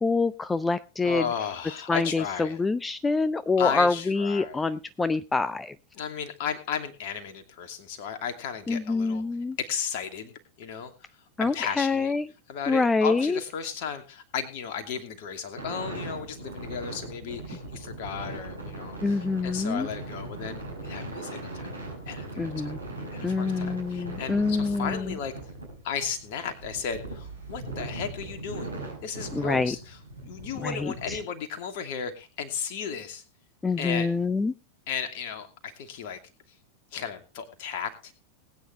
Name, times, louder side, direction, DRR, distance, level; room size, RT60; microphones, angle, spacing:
voice 1, 0.0-1.2 1.9-5.7 8.7-9.6 11.4-12.3 12.7-13.4 19.0-19.9 22.4-22.8 23.2-25.1 29.3-29.7 30.6-31.2 33.6-34.5, left 3 dB, 10° left, 16 dB, 0.6 m, -26 dB
voice 2, 1.0-2.6 3.6-4.7 6.0-9.2 9.6-10.3 10.6-10.9 11.4-12.1 12.5-21.7 22.1-22.7 23.1-25.3 25.8-28.7 29.0-33.2 33.8-34.1 34.9-36.2 36.9-38.1, left 7 dB, 50° left, 7 dB, 2.7 m, -34 dB
sound 1, 15.6-31.2, right 2 dB, 85° right, 5.1 m, -39 dB
20.5 x 9.5 x 3.3 m, 0.31 s
figure-of-eight pair, 90°, 0 cm